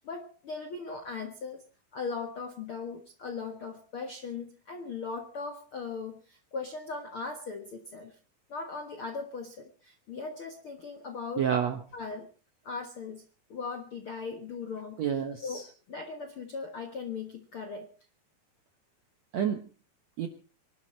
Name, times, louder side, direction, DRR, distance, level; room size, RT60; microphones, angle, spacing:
voice 1, 0.0-1.6 1.9-8.2 8.5-11.5 11.9-12.3 12.6-13.2 13.5-15.0 15.4-15.6 15.9-17.9, left 4 dB, 65° left, 5 dB, 1.3 m, -38 dB
voice 2, 11.4-11.8 15.0-15.7 19.3-19.7 20.2-20.3, right 8 dB, 70° right, 7 dB, 1.7 m, -29 dB
24.5 x 12.0 x 4.4 m, 0.37 s
omnidirectional pair, 4.7 m